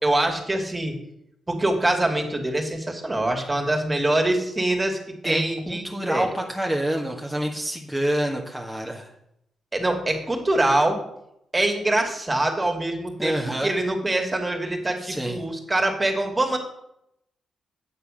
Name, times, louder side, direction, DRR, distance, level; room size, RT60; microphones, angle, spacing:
voice 1, 0.0-0.9 1.5-6.3 9.7-11.0 11.5-16.6, right 1 dB, 25° right, 3 dB, 2.7 m, -24 dB
voice 2, 5.2-9.1 13.2-13.7 15.0-15.4, right 1 dB, ahead, -1 dB, 1.9 m, -27 dB
9.0 x 6.8 x 6.6 m, 0.79 s
supercardioid pair, 50°, 0 cm